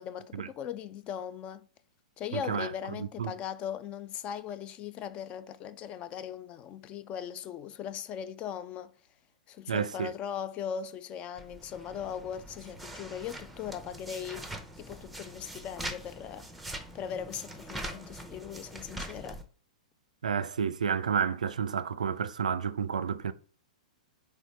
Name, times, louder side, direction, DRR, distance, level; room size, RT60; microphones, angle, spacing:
voice 1, 0.0-1.7 2.2-8.9 9.5-14.5 14.8-16.5 16.9-19.4, left 8 dB, 30° left, 0.3 m, -39 dB
voice 2, 2.3-3.3 9.7-10.1 20.2-23.3, right 7 dB, 70° right, 0.3 m, -31 dB
sound 1, 11.4-19.4, right 1 dB, ahead, 0.6 m, -43 dB
4.0 x 3.1 x 3.1 m
figure-of-eight pair, 105°, 4 cm